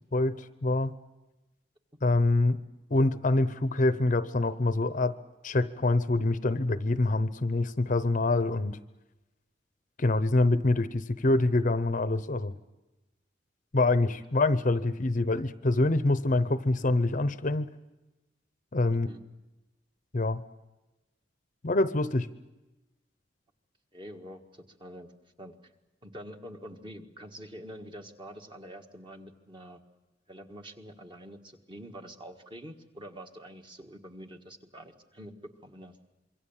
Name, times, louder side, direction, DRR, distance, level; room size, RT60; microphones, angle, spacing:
voice 1, 0.1-0.9 2.0-2.6 2.9-5.1 5.4-8.8 10.0-12.6 13.7-17.7 18.7-19.1 20.1-20.4 21.6-22.3, left 2 dB, 45° left, 13 dB, 0.8 m, -25 dB
voice 2, 23.9-25.1 25.4-25.5 26.0-29.8 30.3-35.3 35.6-36.0, equal, 25° right, 4 dB, 1.7 m, -46 dB
26.5 x 23.5 x 7.3 m, 1.0 s
head